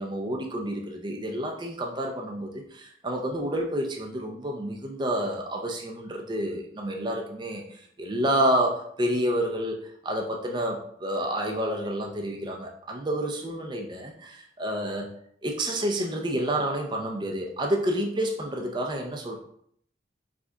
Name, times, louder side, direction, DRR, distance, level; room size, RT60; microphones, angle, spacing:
voice 1, 0.0-15.1 15.4-19.4, right 1 dB, 25° right, 1 dB, 0.5 m, -29 dB
4.9 x 2.3 x 3.8 m, 0.65 s
head